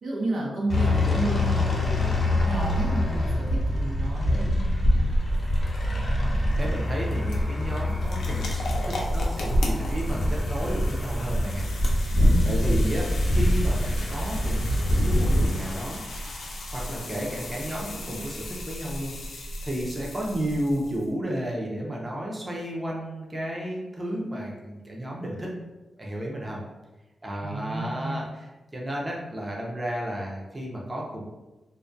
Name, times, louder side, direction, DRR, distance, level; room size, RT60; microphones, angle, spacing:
voice 1, 0.0-4.6 12.1-12.5 27.4-28.2, right 2 dB, 75° right, -3 dB, 0.6 m, -31 dB
sound 1, 0.7-15.5, left 1 dB, 50° left, 0.6 m, -24 dB
sound 2, 6.2-21.1, left 1 dB, 90° left, 0.4 m, -37 dB
voice 2, 6.5-11.7 12.5-16.0 16.7-25.5 26.0-26.6 27.2-31.2, equal, 20° right, -3 dB, 0.5 m, -32 dB
2.2 x 2.1 x 2.5 m, 1.1 s
wide cardioid pair, 100°, 0 cm